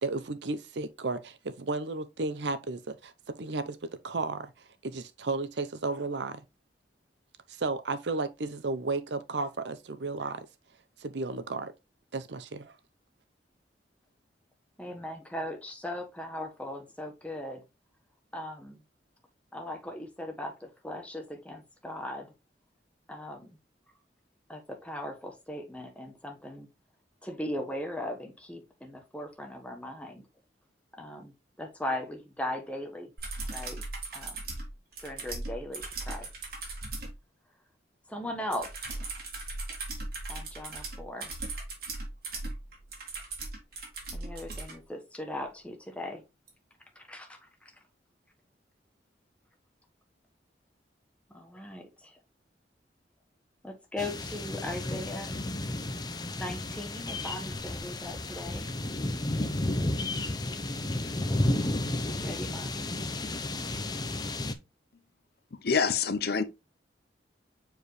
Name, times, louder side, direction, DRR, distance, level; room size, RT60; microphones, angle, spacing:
voice 1, 0.0-3.1 3.4-3.8 4.0-4.5 4.8-6.4 7.5-10.5 11.0-11.7 12.1-12.7, right 3 dB, 75° right, 0.7 m, -33 dB
voice 2, 14.8-17.6 18.3-18.8 19.5-22.3 23.1-23.6 24.5-26.7 27.2-30.3 31.0-33.1 33.5-33.8 34.1-34.4 35.0-36.3 38.1-39.1 40.3-41.3 44.1-46.2 46.9-47.7 51.3-52.2 53.6-55.3 56.3-58.7 62.0-62.9, left 1 dB, 10° left, 1.2 m, -39 dB
sound 1, 33.2-37.1 38.5-44.7 46.5-46.6, right 3 dB, 60° right, 2.6 m, -38 dB
sound 2, 54.0-64.5, left 1 dB, 25° left, 0.7 m, -32 dB
voice 3, 65.5-66.4, left 5 dB, 60° left, 0.7 m, -26 dB
7.1 x 4.6 x 3.2 m
head